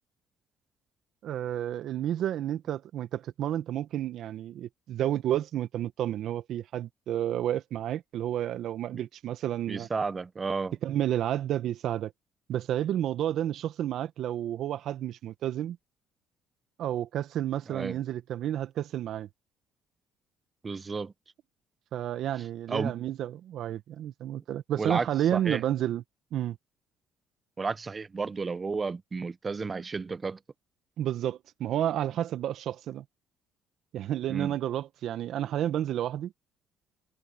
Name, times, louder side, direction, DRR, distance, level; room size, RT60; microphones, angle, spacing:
voice 1, 1.2-9.9 10.8-12.1 12.5-15.8 16.8-19.3 21.9-26.0 26.3-26.6 31.0-33.0 33.9-36.3, right 11 dB, 65° right, 1.5 m, -31 dB
voice 2, 9.7-10.7 17.7-18.0 20.6-21.1 22.7-23.0 24.8-25.6 27.6-30.4 34.3-34.6, right 4 dB, 30° right, 1.2 m, -32 dB
supercardioid pair, 70°, 0 cm